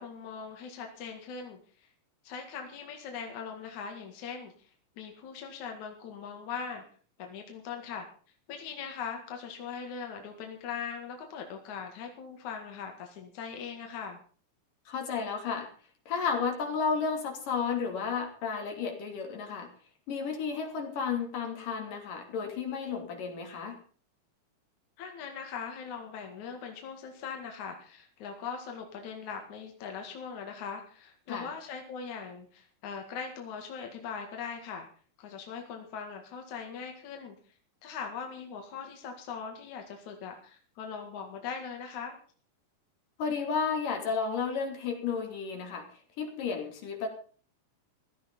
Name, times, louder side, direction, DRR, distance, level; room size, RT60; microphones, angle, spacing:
voice 1, 0.0-1.9 2.2-4.7 5.0-6.8 7.2-8.1 8.5-14.2 25.0-34.9 35.2-37.4 37.8-42.2, left 6 dB, 65° left, 3 dB, 3.3 m, -40 dB
voice 2, 14.9-15.7 16.1-19.7 20.1-23.8 31.3-31.5 43.2-45.9 46.2-47.1, left 5 dB, 85° left, 3 dB, 4.5 m, -32 dB
16.0 x 13.5 x 5.4 m, 0.43 s
omnidirectional pair, 3.7 m